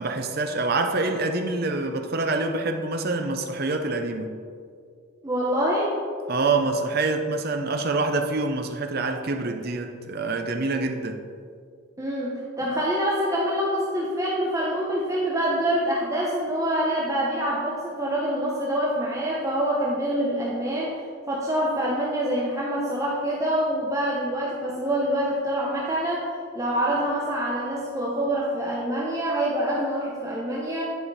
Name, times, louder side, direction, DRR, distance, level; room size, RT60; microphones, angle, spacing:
voice 1, 0.0-4.4 6.3-11.2, right 3 dB, 50° right, 5 dB, 0.7 m, -26 dB
voice 2, 5.2-6.0 12.0-21.0 21.3-26.3 26.5-30.8, right 1 dB, 15° right, -5 dB, 0.8 m, -26 dB
10.0 x 5.0 x 4.1 m, 2.2 s
head